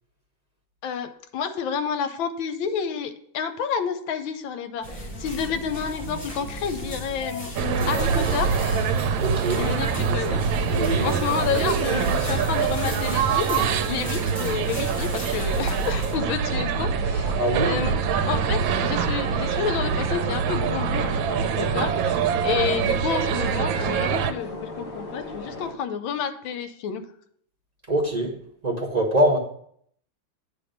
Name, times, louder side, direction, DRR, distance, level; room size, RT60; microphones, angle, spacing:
voice 1, 0.8-7.5 7.9-8.5 9.5-18.0 18.3-27.1, left 7 dB, 80° left, 1.4 m, -30 dB
sound 1, 4.8-16.1, left 1 dB, 20° left, 2.4 m, -35 dB
sound 2, 7.6-24.3, right 6 dB, 80° right, 1.3 m, -24 dB
voice 2, 9.2-9.7 10.7-11.1 17.4-17.9 27.9-28.4 28.6-29.4, right 1 dB, 35° right, 0.7 m, -24 dB
sound 3, 10.8-25.7, left 2 dB, 50° left, 0.6 m, -41 dB
8.8 x 3.2 x 6.4 m
omnidirectional pair, 2.1 m